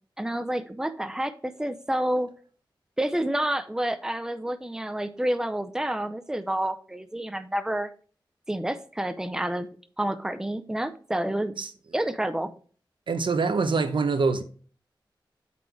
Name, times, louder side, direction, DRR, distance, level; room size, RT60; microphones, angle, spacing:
voice 1, 0.2-2.3 3.0-7.9 8.5-9.7 10.0-11.5 11.9-12.5, right 1 dB, 5° right, 0.6 m, -29 dB
voice 2, 13.1-14.4, right 4 dB, 80° right, 0.8 m, -24 dB
8.0 x 4.3 x 4.7 m
wide cardioid pair, 95°, 8 cm